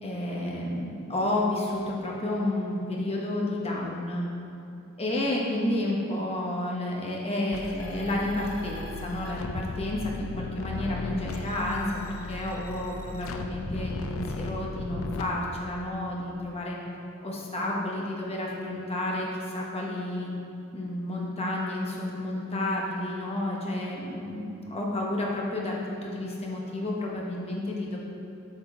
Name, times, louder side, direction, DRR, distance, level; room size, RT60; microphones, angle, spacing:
voice 1, 0.0-4.2 5.0-12.0 12.3-16.8 17.2-19.3 19.5-20.3 20.7-28.0, left 1 dB, 30° left, -3 dB, 1.0 m, -31 dB
sound 1, 7.5-15.2, left 3 dB, 70° left, 0.5 m, -36 dB
8.1 x 5.2 x 3.7 m, 2.7 s
head